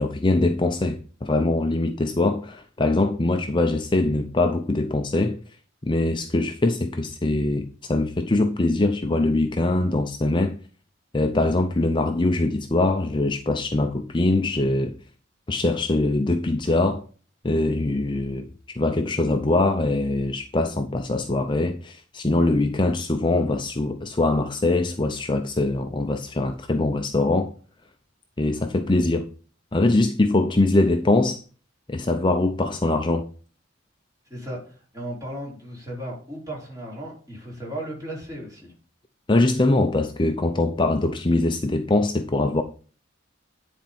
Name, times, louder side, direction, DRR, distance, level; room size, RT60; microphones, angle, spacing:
voice 1, 0.0-5.4 5.8-10.6 11.1-15.0 15.5-17.0 17.4-18.5 18.8-27.5 28.4-29.3 29.7-31.4 31.9-33.3 39.3-42.6, left 2 dB, 25° left, 0.6 m, -22 dB
voice 2, 34.3-38.7, right 1 dB, 15° right, 4.1 m, -35 dB
10.0 x 4.4 x 5.3 m
head